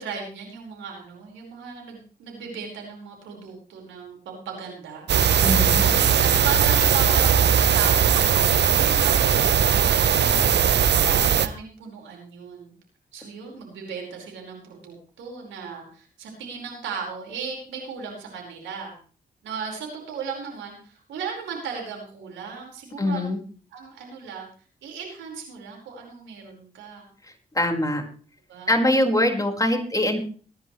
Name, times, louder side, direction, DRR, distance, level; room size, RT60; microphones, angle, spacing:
voice 1, 0.0-5.1 5.4-12.7 13.1-19.0 19.4-23.3 23.7-24.5 24.8-27.1 28.5-28.8, right 6 dB, 85° right, 0 dB, 4.8 m, -36 dB
sound 1, 5.1-11.5, right 8 dB, 65° right, 1.0 m, -19 dB
voice 2, 5.4-5.8 23.0-23.4 27.5-28.0 28.7-30.2, left 1 dB, 20° left, 3 dB, 4.8 m, -22 dB
22.0 x 10.5 x 3.2 m, 0.40 s
supercardioid pair, 40°, 19 cm